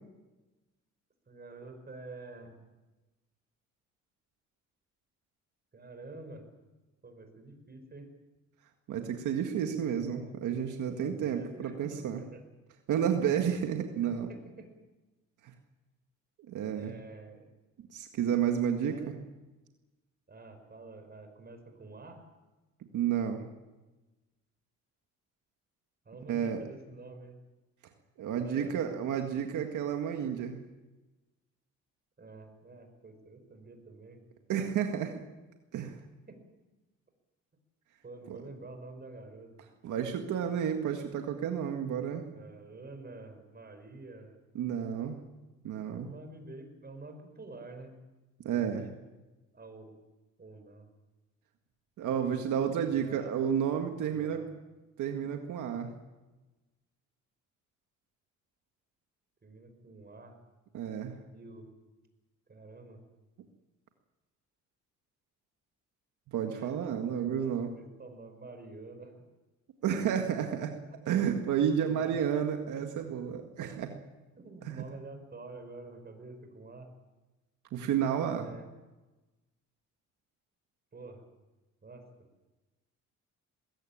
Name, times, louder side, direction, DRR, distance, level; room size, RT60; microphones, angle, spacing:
voice 1, 1.3-2.7 5.7-6.5 7.0-8.1 9.7-12.4 13.3-13.6 14.3-14.7 16.7-17.5 18.9-19.1 20.3-22.3 26.1-27.4 28.4-28.9 32.2-34.2 35.8-35.9 36.3-36.4 38.0-39.5 42.3-44.4 45.8-48.0 48.4-48.8 49.5-50.0 50.4-50.9 52.1-52.4 52.7-53.3 54.0-54.5 59.4-60.4 61.3-61.8 62.5-63.0 66.4-69.2 70.3-70.6 71.7-72.3 73.6-73.8 74.3-76.9 78.4-78.7 80.9-81.2 81.8-82.1, right 3 dB, 30° right, 6 dB, 5.5 m, -48 dB
voice 2, 8.9-12.2 12.9-14.3 15.4-15.5 16.5-16.9 17.9-19.1 22.9-23.4 26.3-26.6 28.2-30.6 34.5-35.1 35.7-36.0 39.8-42.3 44.6-45.2 45.6-46.1 48.4-48.9 52.0-54.4 55.0-55.9 60.7-61.2 66.3-67.7 69.8-70.8 71.1-73.9 74.7-74.9 77.7-78.5, right 8 dB, 80° right, 4 dB, 1.8 m, -31 dB
21.0 x 16.5 x 8.8 m, 1.1 s
cardioid pair, 90°, 30 cm